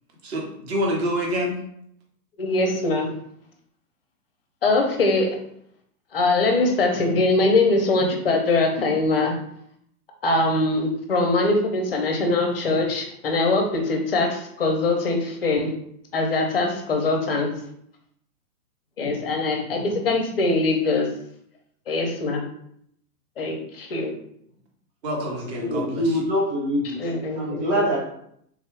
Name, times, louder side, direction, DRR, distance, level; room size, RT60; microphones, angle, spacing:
voice 1, 0.2-1.6 25.0-26.0, equal, 40° right, -1 dB, 0.9 m, -27 dB
voice 2, 2.4-3.1 4.6-5.4 6.1-9.3 10.2-15.7 16.1-17.6 19.0-21.2 21.9-22.4 23.4-24.1 27.0-27.4, left 2 dB, 40° left, 3 dB, 0.4 m, -22 dB
voice 3, 25.5-27.0 27.4-28.0, equal, 20° right, -7 dB, 0.9 m, -24 dB
3.4 x 2.2 x 3.2 m, 0.70 s
hypercardioid pair, 160°, 48 cm